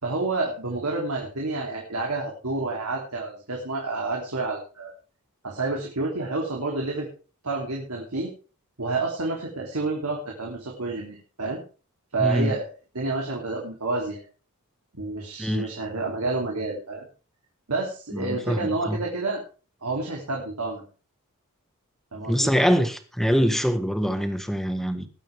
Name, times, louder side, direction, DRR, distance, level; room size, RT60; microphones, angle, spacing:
voice 1, 0.0-4.9 5.4-7.1 7.4-8.3 8.8-11.6 12.1-12.7 12.9-14.2 14.9-17.0 17.7-19.4 19.8-20.9 22.1-22.5, right 3 dB, 75° right, 3.2 m, -29 dB
voice 2, 12.2-12.5 15.4-15.7 18.1-19.0 22.3-25.1, equal, ahead, 1.4 m, -24 dB
20.5 x 9.0 x 3.5 m
head